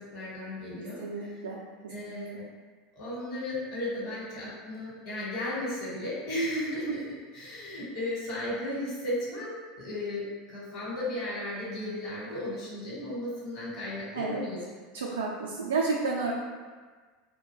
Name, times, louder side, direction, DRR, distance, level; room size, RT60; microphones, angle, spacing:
voice 1, 0.0-1.4 1.9-2.4 2.9-7.0 7.3-14.6, left 1 dB, 55° left, -6 dB, 1.0 m, -35 dB
voice 2, 0.8-1.6 2.1-2.2 14.1-14.5 14.9-16.3, right 4 dB, 90° right, -4 dB, 0.3 m, -31 dB
2.2 x 2.1 x 3.0 m, 1.5 s
hypercardioid pair, 85°, 0 cm